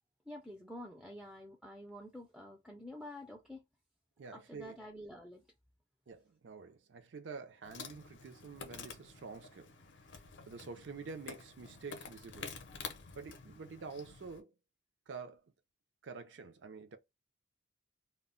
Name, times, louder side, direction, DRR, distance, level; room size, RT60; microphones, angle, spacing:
voice 1, 0.3-3.6 4.3-5.5, left 1 dB, ahead, 0.4 m, -48 dB
voice 2, 4.2-4.8 6.1-9.8 10.5-12.6 13.2-14.5 15.1-15.5 16.0-17.0, right 4 dB, 70° right, 0.4 m, -48 dB
Insect, 7.6-14.4, left 5 dB, 65° left, 0.6 m, -49 dB
2.1 x 2.0 x 3.6 m
head